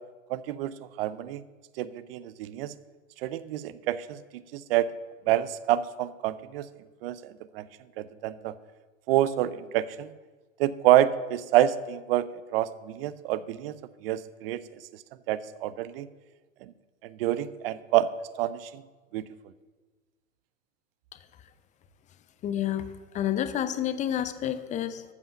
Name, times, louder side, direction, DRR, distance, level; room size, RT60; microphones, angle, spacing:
voice 1, 0.3-1.4 1.8-2.7 3.2-4.2 4.5-4.9 5.3-6.7 7.0-7.7 8.0-8.5 9.1-10.1 10.6-13.7 14.0-14.6 15.3-16.1 16.6-16.7 17.0-18.1 18.4-18.8 19.1-19.3, right 13 dB, 45° right, 17 dB, 0.6 m, -27 dB
voice 2, 22.4-25.0, left 10 dB, 20° left, 11 dB, 0.6 m, -29 dB
13.0 x 5.5 x 7.0 m, 1.3 s
hypercardioid pair, 115°, 40 cm